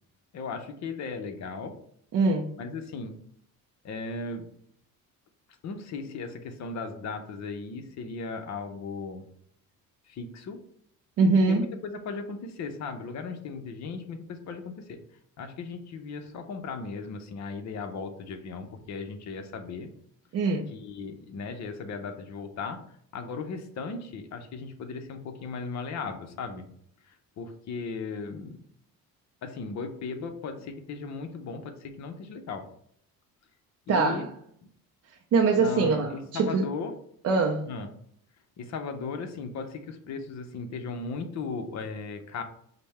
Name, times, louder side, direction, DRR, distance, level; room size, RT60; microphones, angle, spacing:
voice 1, 0.3-1.7 2.6-3.1 3.8-4.5 5.6-9.2 10.1-10.6 11.5-15.0 15.4-19.9 20.7-22.8 23.1-26.7 27.0-28.6 29.4-32.7 33.9-34.3 35.6-36.9 37.6-37.9 38.6-42.4, left 4 dB, 50° left, 6 dB, 0.7 m, -37 dB
voice 2, 2.1-2.5 11.2-11.7 20.3-20.7 33.9-34.3 35.3-36.7 37.2-37.7, right 4 dB, 40° right, 2 dB, 0.4 m, -23 dB
5.3 x 2.1 x 4.2 m, 0.66 s
cardioid pair, 155°, 36 cm